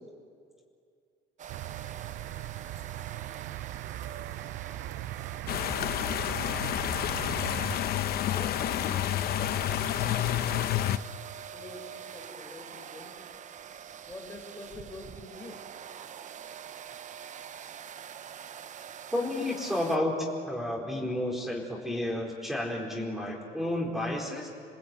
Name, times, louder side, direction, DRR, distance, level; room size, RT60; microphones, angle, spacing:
sound 1, 1.4-20.0, right 8 dB, 45° right, 0.9 m, -45 dB
sound 2, 1.5-7.8, right 15 dB, 80° right, 0.5 m, -39 dB
sound 3, 5.5-11.0, left 12 dB, 65° left, 0.9 m, -29 dB
voice 1, 8.3-10.6 11.5-13.1 14.1-15.6, left 2 dB, 15° left, 0 dB, 4.5 m, -46 dB
voice 2, 19.1-24.5, left 1 dB, ahead, -2 dB, 4.5 m, -31 dB
28.0 x 19.5 x 9.2 m, 2.3 s
cardioid pair, 110°, 17 cm